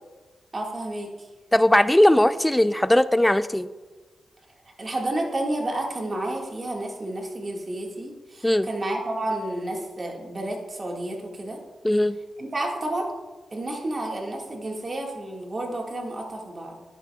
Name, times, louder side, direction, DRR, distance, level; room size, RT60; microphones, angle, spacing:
voice 1, 0.5-1.3 4.8-11.6 12.4-13.1 13.5-16.8, right 1 dB, 35° right, 0 dB, 1.7 m, -30 dB
voice 2, 1.5-3.7 8.4-8.7 11.8-12.2, left 1 dB, 10° left, 14 dB, 0.3 m, -19 dB
11.0 x 9.1 x 2.3 m, 1.3 s
cardioid pair, 80°, 0 cm